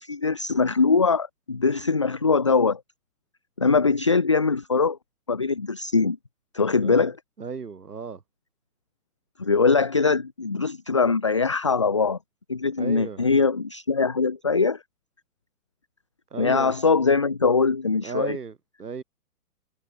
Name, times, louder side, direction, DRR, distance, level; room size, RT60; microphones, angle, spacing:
voice 1, 0.0-2.8 3.6-5.0 5.3-6.2 6.5-7.2 9.4-12.2 12.5-14.8 16.4-18.4, left 4 dB, 25° left, 0.3 m, -22 dB
voice 2, 7.4-8.2 12.8-13.2 16.3-16.8 18.0-18.5 18.8-19.0, right 5 dB, 85° right, 2.3 m, -34 dB
hypercardioid pair, 130°, 45 cm